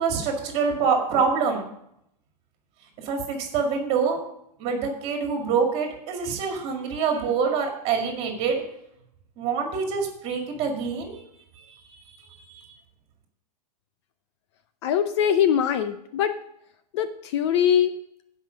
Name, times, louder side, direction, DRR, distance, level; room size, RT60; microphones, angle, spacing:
voice 1, 0.0-1.7 3.0-4.2 4.6-8.6 9.4-11.2 11.8-12.0 12.5-12.7, right 5 dB, 30° right, 3 dB, 2.2 m, -25 dB
voice 2, 14.8-16.3 16.9-17.9, left 9 dB, 40° left, 10 dB, 0.6 m, -22 dB
15.5 x 5.7 x 5.2 m, 0.76 s
supercardioid pair, 160°, 21 cm